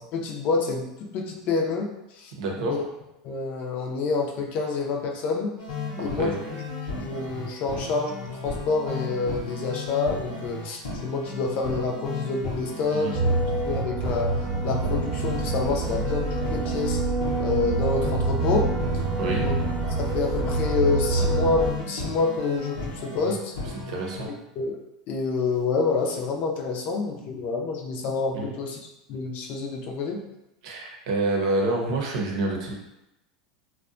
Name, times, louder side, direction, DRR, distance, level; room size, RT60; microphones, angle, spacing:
voice 1, 0.0-1.9 2.2-2.8 3.2-5.5 6.0-6.4 6.9-13.3 13.6-14.3 14.6-17.0 17.4-18.7 19.4-19.6 20.0-23.5 24.6-24.8 25.1-28.8 29.1-30.2, left 4 dB, 50° left, 1 dB, 0.5 m, -28 dB
voice 2, 2.4-2.8 6.0-6.3 12.9-13.1 19.2-19.5 23.9-24.3 28.3-28.5 30.6-32.7, right 2 dB, 70° right, 0 dB, 0.7 m, -27 dB
sound 1, 5.6-24.3, left 3 dB, 85° left, 0.7 m, -35 dB
sound 2, 13.1-21.7, right 2 dB, 15° right, 0.7 m, -26 dB
2.6 x 2.2 x 2.5 m, 0.89 s
hypercardioid pair, 100°, 4 cm